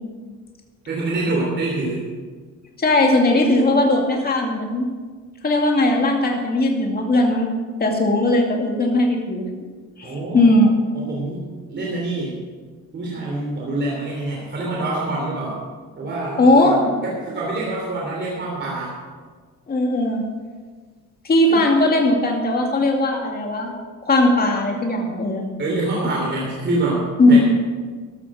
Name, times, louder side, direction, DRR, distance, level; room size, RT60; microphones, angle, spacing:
voice 1, 0.9-2.1 10.0-10.5 10.9-12.4 12.9-15.6 16.0-18.9 21.5-21.6 25.6-27.4, right 2 dB, 35° right, -4 dB, 3.3 m, -26 dB
voice 2, 2.8-4.9 5.4-7.5 7.8-9.5 10.0-10.7 16.4-16.9 19.7-20.2 21.2-23.7 24.0-25.4 27.2-27.4, left 1 dB, 30° left, 1 dB, 2.3 m, -18 dB
14.0 x 12.5 x 4.9 m, 1.5 s
cardioid pair, 135°, 31 cm